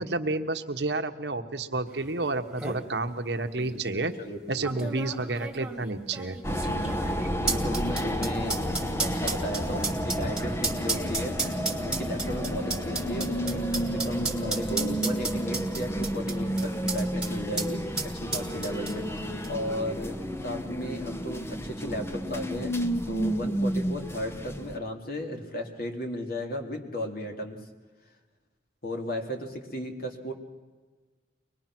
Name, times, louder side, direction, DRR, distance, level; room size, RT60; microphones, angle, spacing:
voice 1, 0.0-4.1 4.5-6.4, right 2 dB, 75° right, 7 dB, 1.2 m, -30 dB
sound 1, 2.1-2.2 2.4-2.8 3.6-3.7 4.6-17.3 17.6-17.7 18.0-19.2 19.4-19.5, right 3 dB, 5° right, 2.4 m, -32 dB
voice 2, 3.6-4.9 6.6-6.9 7.4-11.4 11.8-17.8 18.1-20.2 20.4-22.7 23.1-27.6 28.8-30.3, equal, 60° left, 3 dB, 2.8 m, -35 dB
sound 2, 6.4-24.8, equal, 15° left, 1.0 m, -31 dB
24.0 x 20.5 x 6.1 m, 1.4 s
head